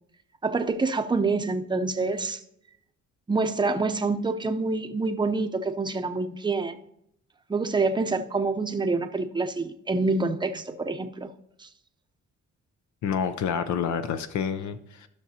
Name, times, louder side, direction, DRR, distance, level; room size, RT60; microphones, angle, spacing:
voice 1, 0.4-2.4 3.3-6.8 7.5-11.3 11.6-11.7, right 3 dB, 15° right, 7 dB, 0.6 m, -26 dB
voice 2, 13.0-15.1, left 7 dB, 70° left, 10 dB, 0.6 m, -28 dB
13.5 x 6.0 x 2.8 m, 0.77 s
cardioid pair, 90°, 30 cm